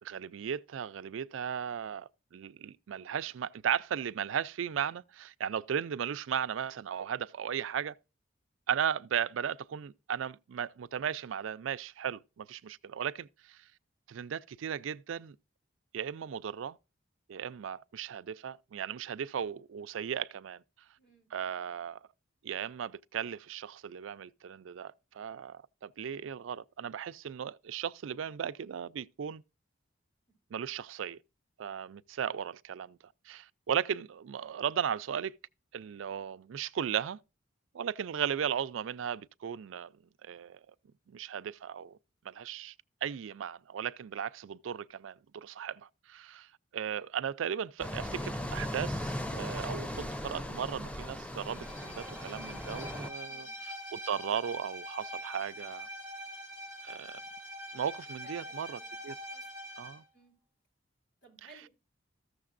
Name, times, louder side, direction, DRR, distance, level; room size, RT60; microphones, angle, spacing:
voice 1, 0.0-8.0 8.7-13.6 14.1-15.4 15.9-16.8 17.3-20.6 21.3-22.0 22.4-29.4 30.5-31.2 31.6-33.0 33.3-35.3 35.7-37.2 37.7-39.9 40.2-40.6 41.1-42.0 42.2-42.7 43.0-46.5 46.7-53.5 53.9-55.9 56.8-57.2 57.7-59.2 59.8-60.0, right 8 dB, 85° right, 0.4 m, -36 dB
voice 2, 21.0-21.3 30.3-30.4 53.2-53.6 58.1-59.0 59.3-59.5 60.1-60.3 61.2-61.7, right 2 dB, 65° left, 3.8 m, -59 dB
sound 1, 47.8-53.1, left 1 dB, 5° left, 0.4 m, -38 dB
Bowed string instrument, 51.4-60.0, equal, 85° left, 5.2 m, -44 dB
14.5 x 6.5 x 2.5 m
head